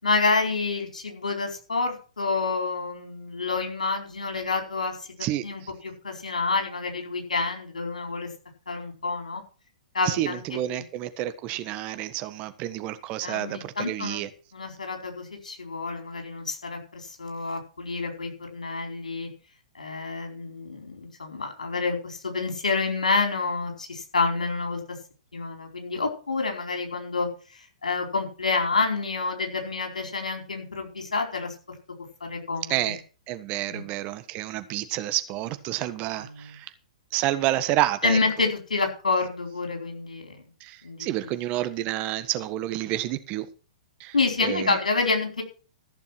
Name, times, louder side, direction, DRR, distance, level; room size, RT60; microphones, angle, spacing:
voice 1, 0.0-5.1 5.4-8.3 8.7-9.4 9.9-10.4 10.7-10.8 13.2-14.2 14.5-19.3 19.7-24.8 25.3-27.3 27.5-31.6 32.2-32.9 33.7-33.8 36.3-36.5 38.0-40.4 40.8-41.1 44.1-45.4, left 4 dB, 85° left, 4.5 m, -28 dB
voice 2, 5.2-5.7 10.0-14.3 32.7-33.0 33.3-36.7 37.1-38.2 40.6-43.5 44.0-44.1 44.4-44.8, right 14 dB, 35° right, 1.4 m, -29 dB
14.5 x 7.0 x 6.1 m
hypercardioid pair, 115°, 4 cm